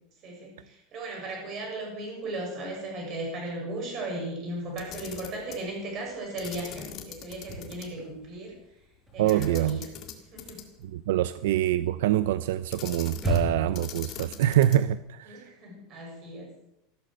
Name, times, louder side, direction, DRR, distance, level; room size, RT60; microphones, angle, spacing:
voice 1, 0.2-8.6 9.1-10.6 15.3-16.5, right 1 dB, 30° right, 0 dB, 6.9 m, -36 dB
Camera, 4.7-5.6 6.4-7.9 8.2-8.3 9.3-10.9 12.7-13.5 13.7-14.9, left 9 dB, 30° left, 2.0 m, -42 dB
sound 1, 7.3-8.5 8.8-13.9, right 1 dB, 10° right, 7.4 m, -34 dB
voice 2, 9.2-9.8 10.8-15.5, right 13 dB, 75° right, 14 dB, 0.6 m, -25 dB
15.0 x 13.0 x 6.5 m, 0.83 s
supercardioid pair, 180°, 0 cm